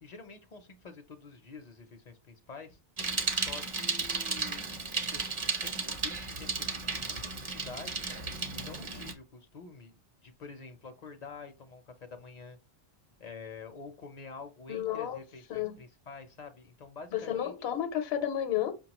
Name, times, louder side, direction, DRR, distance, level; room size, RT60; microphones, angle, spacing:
voice 1, 0.0-2.8 3.4-4.6 5.1-8.1 8.5-9.9 10.2-12.6 13.2-17.5, left 4 dB, 50° left, 0.5 m, -48 dB
Bicycle, 3.0-9.1, right 4 dB, 35° right, 0.6 m, -34 dB
voice 2, 14.7-15.2 15.5-15.7 17.1-18.7, left 10 dB, 75° left, 0.9 m, -31 dB
5.4 x 2.2 x 2.9 m
omnidirectional pair, 1.1 m